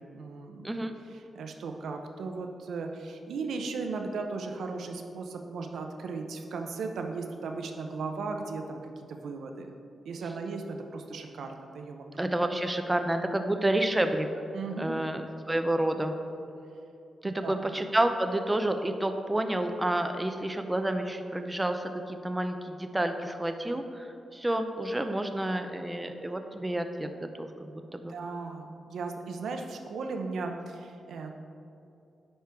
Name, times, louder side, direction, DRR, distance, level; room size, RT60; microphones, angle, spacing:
voice 1, 0.0-0.7 1.1-9.7 10.0-12.2 14.5-15.0 17.2-17.6 28.1-31.3, right 4 dB, 90° right, 4 dB, 0.6 m, -37 dB
voice 2, 12.2-14.3 14.8-16.1 17.2-24.1 24.3-27.1 27.4-28.1, right 1 dB, 10° right, 6 dB, 0.3 m, -29 dB
9.5 x 4.4 x 3.5 m, 2.6 s
wide cardioid pair, 145°, 0 cm